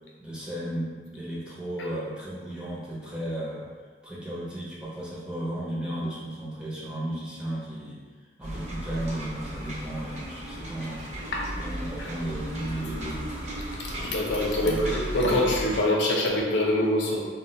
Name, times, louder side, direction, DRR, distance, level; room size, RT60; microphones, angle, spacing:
voice 1, 0.2-3.7 4.0-8.0 8.4-11.1 11.6-13.2 14.6-14.9, right 1 dB, 5° right, -8 dB, 0.5 m, -34 dB
sound 1, 8.4-15.8, equal, 40° right, 0.6 m, -35 dB
voice 2, 13.8-17.2, left 1 dB, 85° left, -3 dB, 0.6 m, -24 dB
2.3 x 2.1 x 3.8 m, 1.5 s
head